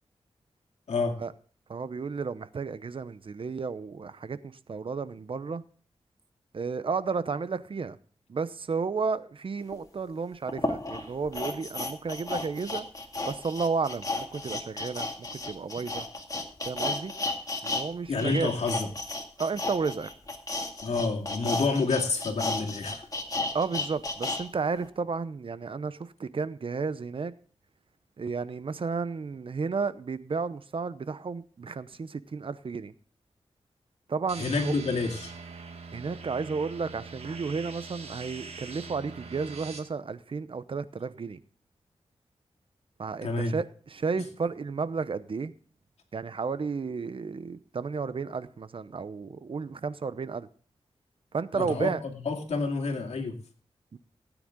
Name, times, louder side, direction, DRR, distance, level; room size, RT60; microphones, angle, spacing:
voice 1, 1.7-5.6 6.5-8.0 8.3-12.9 13.3-16.0 16.7-17.1 17.6-18.5 19.4-20.1 23.5-27.3 28.2-32.9 34.1-34.7 35.9-41.4 43.0-45.5 46.1-50.5 51.3-52.0 53.9-54.0, right 5 dB, 55° right, 0.8 m, -32 dB
sound 1, 9.7-9.8 10.5-17.9 18.1-24.4 24.8-24.9, left 2 dB, 35° left, 2.2 m, -33 dB
voice 2, 18.1-18.9 20.8-23.0 34.4-35.3 43.2-43.5 44.2-44.3 51.5-53.3, left 4 dB, 80° left, 2.3 m, -29 dB
sound 2, 34.3-39.8, right 4 dB, 80° right, 2.1 m, -43 dB
17.0 x 9.1 x 3.7 m
wide cardioid pair, 95°, 11 cm